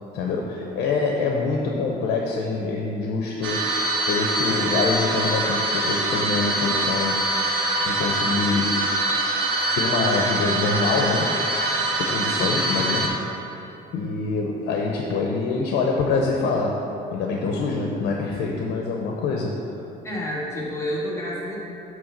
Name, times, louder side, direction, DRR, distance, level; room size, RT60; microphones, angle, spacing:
voice 1, 0.1-3.7 4.1-7.3 7.5-8.8 9.8-11.4 12.0-13.2 13.9-16.8 17.1-19.6, left 4 dB, 75° left, 0 dB, 0.8 m, -25 dB
sound 1, 3.4-13.1, right 2 dB, 85° right, 1.2 m, -24 dB
voice 2, 20.0-21.6, equal, 15° left, -6 dB, 1.7 m, -29 dB
8.8 x 3.4 x 6.6 m, 2.8 s
cardioid pair, 110°, 17 cm